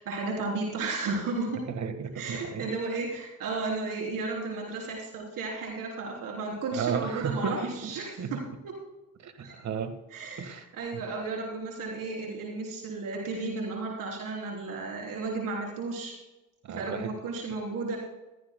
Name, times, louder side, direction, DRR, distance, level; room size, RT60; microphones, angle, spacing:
voice 1, 0.0-1.6 2.2-8.4 9.4-9.5 10.1-16.2 16.7-18.0, right 3 dB, 65° right, -1 dB, 3.6 m, -33 dB
voice 2, 1.7-2.7 6.7-8.4 9.2-10.0 10.4-10.7 10.9-11.0 16.6-17.1, right 6 dB, 50° right, 9 dB, 1.6 m, -34 dB
16.0 x 13.5 x 2.2 m, 1.0 s
supercardioid pair, 75°, 35 cm